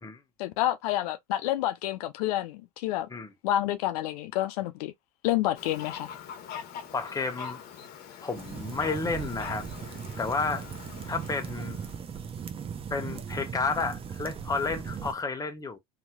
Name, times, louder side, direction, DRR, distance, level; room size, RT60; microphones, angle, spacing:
voice 1, 0.4-3.1 3.4-4.9 5.2-6.1, left 13 dB, 80° left, 0.6 m, -29 dB
Fowl, 5.6-12.0, left 8 dB, 55° left, 1.2 m, -44 dB
voice 2, 6.9-7.6 8.2-10.6 11.1-11.8 12.9-15.8, left 4 dB, 20° left, 1.0 m, -31 dB
sound 1, 8.4-15.1, right 7 dB, 30° right, 0.7 m, -38 dB
2.9 x 2.9 x 2.3 m
supercardioid pair, 95°, 19 cm